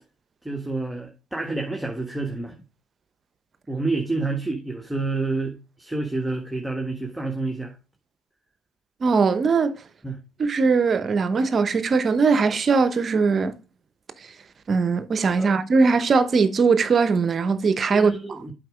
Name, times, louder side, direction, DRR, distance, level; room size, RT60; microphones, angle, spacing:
voice 1, 0.4-2.5 3.7-7.7 10.0-10.2 15.4-15.6 17.9-18.5, right 3 dB, 5° right, 1.5 m, -28 dB
voice 2, 9.0-9.8 10.4-13.5 14.7-18.4, right 4 dB, 40° right, 0.8 m, -20 dB
7.7 x 5.0 x 5.0 m
supercardioid pair, 70°, 0 cm